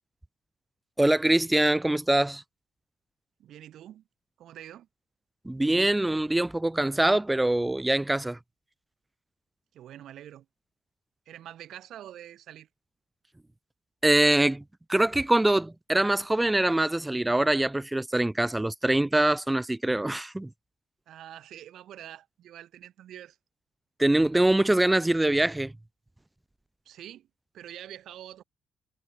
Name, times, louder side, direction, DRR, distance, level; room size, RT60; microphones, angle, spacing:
voice 1, 1.0-2.4 5.5-8.4 14.0-14.6 14.9-20.5 24.0-25.7, right 1 dB, 10° right, 0.4 m, -24 dB
voice 2, 3.4-4.0 4.4-4.9 9.7-10.5 11.3-12.7 21.1-23.4 26.9-27.3 27.5-28.4, right 11 dB, 75° right, 2.5 m, -45 dB
cardioid pair, 90°, 0 cm